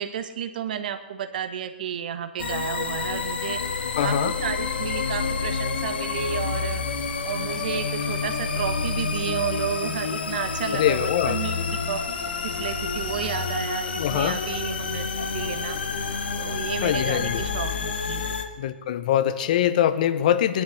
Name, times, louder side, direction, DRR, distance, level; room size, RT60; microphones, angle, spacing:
voice 1, 0.0-3.6 4.0-6.8 7.2-11.6 11.9-15.8 16.4-18.3, right 9 dB, 55° right, 9 dB, 1.2 m, -32 dB
sound 1, 2.4-18.4, left 5 dB, 70° left, 1.5 m, -29 dB
voice 2, 4.0-4.4 10.7-11.4 14.0-14.4 16.8-17.4 18.6-20.6, left 10 dB, 45° left, 14 dB, 0.9 m, -23 dB
19.0 x 11.0 x 6.4 m, 1.3 s
hypercardioid pair, 140°, 6 cm